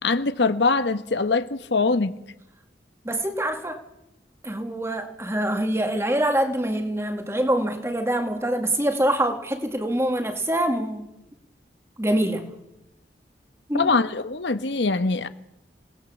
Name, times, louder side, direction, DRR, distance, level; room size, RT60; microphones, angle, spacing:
voice 1, 0.0-2.1 13.7-15.3, left 3 dB, 85° left, 1.2 m, -23 dB
voice 2, 3.0-3.8 4.4-11.1 12.0-12.5 13.7-13.9, right 1 dB, 15° right, 2.1 m, -25 dB
28.0 x 18.0 x 7.2 m
head